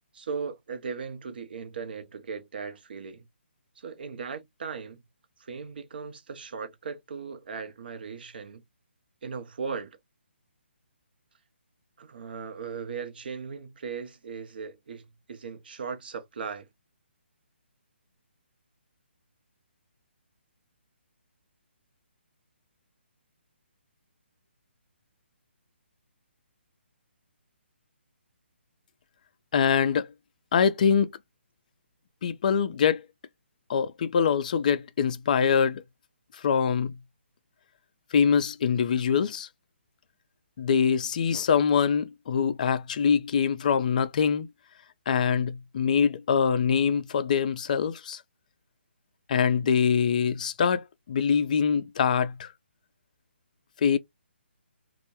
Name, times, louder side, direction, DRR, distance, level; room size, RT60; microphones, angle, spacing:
voice 1, 0.1-3.3 3.8-5.0 5.4-8.6 9.2-10.0 12.0-16.7, right 5 dB, 50° right, 0.6 m, -38 dB
voice 2, 29.5-30.1 30.5-31.1 32.2-33.0 33.7-35.8 36.4-36.9 38.1-39.5 40.6-44.5 45.1-48.2 49.3-52.5 53.8-54.0, left 7 dB, 40° left, 0.3 m, -24 dB
2.1 x 2.1 x 2.8 m
figure-of-eight pair, 140°, 6 cm